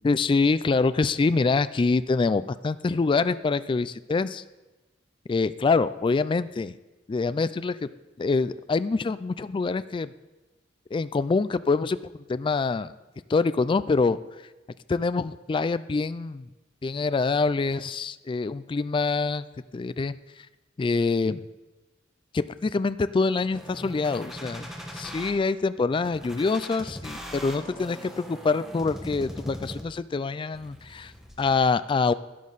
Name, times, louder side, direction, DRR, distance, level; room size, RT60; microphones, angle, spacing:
voice 1, 0.0-4.4 5.3-6.8 7.1-7.9 8.2-10.1 10.9-12.9 13.3-14.2 14.9-16.5 16.8-19.5 19.7-20.2 20.8-21.5 22.3-24.7 24.9-31.1 31.4-32.1, left 4 dB, 25° left, 15 dB, 0.3 m, -25 dB
sound 1, 23.5-25.3 26.0-30.1 30.5-31.5, equal, 5° right, 1.3 m, -40 dB
12.5 x 10.5 x 4.0 m, 1.1 s
head